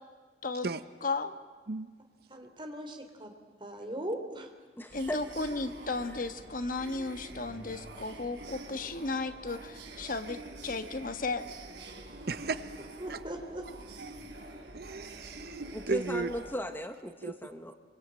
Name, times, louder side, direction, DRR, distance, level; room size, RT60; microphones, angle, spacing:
voice 1, 1.0-1.3 4.9-10.4 10.6-11.5, left 3 dB, 50° left, 9 dB, 1.4 m, -34 dB
voice 2, 2.3-3.3 3.6-4.5 13.0-13.6, right 1 dB, 30° right, 4 dB, 3.4 m, -39 dB
voice 3, 4.8-5.5 15.7-17.7, equal, 10° left, 6 dB, 1.4 m, -37 dB
sound 1, 4.9-16.5, right 2 dB, 90° right, 3.9 m, -47 dB
voice 4, 12.3-12.8 13.1-13.2 14.0-14.1 14.7-16.3 17.2-17.3, right 3 dB, 60° right, 13 dB, 0.8 m, -35 dB
26.5 x 24.0 x 8.9 m, 1.4 s
head